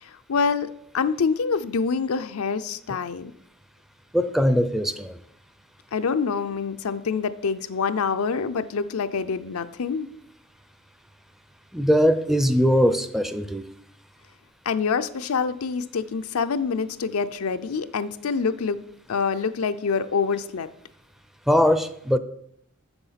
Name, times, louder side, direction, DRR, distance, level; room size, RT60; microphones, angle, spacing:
voice 1, 0.0-3.3 5.9-10.1 14.7-18.8 19.1-20.7, left 5 dB, 85° left, 11 dB, 0.5 m, -26 dB
voice 2, 4.1-5.2 11.7-13.6 21.5-22.2, equal, ahead, 10 dB, 0.4 m, -21 dB
7.1 x 7.0 x 5.7 m, 0.73 s
head